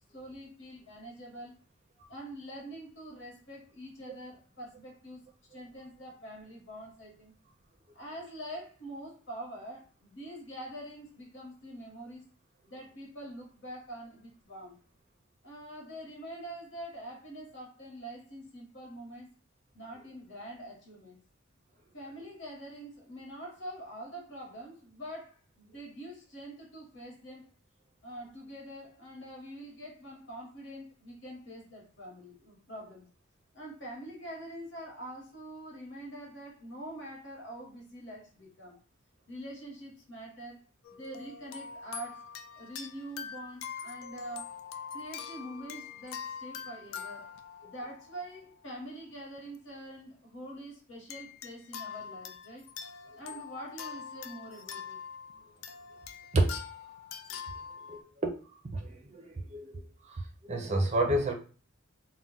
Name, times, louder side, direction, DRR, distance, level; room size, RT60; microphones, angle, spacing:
voice 1, 0.1-1.5 2.1-5.2 5.5-7.3 7.9-12.2 12.7-14.7 15.4-19.3 19.7-21.2 21.9-27.4 28.0-33.0 33.5-38.8 39.3-40.6 40.9-42.3 42.5-44.5 44.9-47.3 47.6-52.6 53.1-55.0, right 1 dB, 60° left, -2 dB, 1.1 m, -45 dB
sound 1, 40.8-48.7 49.4-49.6 51.1-58.0, left 7 dB, 80° left, 0.3 m, -44 dB
voice 2, 57.9-58.3 58.7-59.8 60.1-61.3, right 1 dB, 35° right, 2 dB, 0.5 m, -29 dB
2.3 x 2.1 x 3.8 m, 0.39 s
head